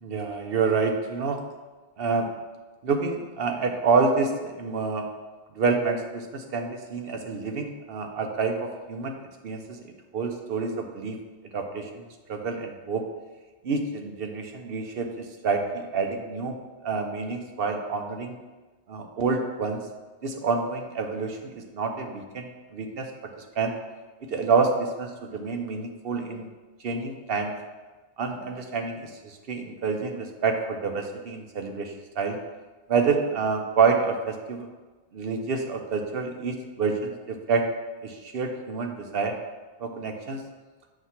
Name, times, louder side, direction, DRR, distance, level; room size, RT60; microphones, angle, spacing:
voice 1, 0.0-1.4 2.0-2.3 2.8-5.1 5.5-9.2 9.4-9.8 10.1-11.2 11.5-12.0 12.3-13.0 13.6-18.4 18.9-19.8 20.2-23.1 23.6-23.7 24.2-26.5 26.8-27.5 28.2-32.4 32.9-34.7 35.1-37.7 38.0-39.3 39.8-40.4, right 4 dB, 55° right, 4 dB, 0.8 m, -28 dB
7.9 x 2.8 x 5.8 m, 1.2 s
omnidirectional pair, 1.2 m